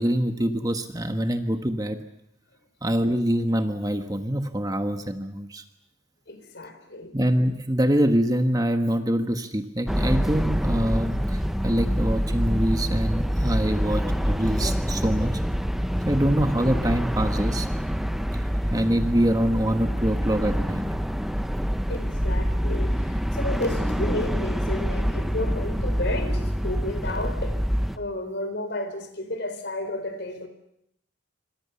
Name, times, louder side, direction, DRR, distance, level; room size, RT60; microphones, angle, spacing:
voice 1, 0.0-2.0 2.8-5.6 7.1-15.3 16.1-17.7 18.7-20.8, equal, 20° right, 1.5 m, -25 dB
voice 2, 6.3-7.1 21.9-27.6 27.9-30.5, left 1 dB, 55° left, 4.2 m, -32 dB
sound 1, 9.9-28.0, equal, ahead, 1.0 m, -26 dB
26.5 x 26.0 x 7.1 m
head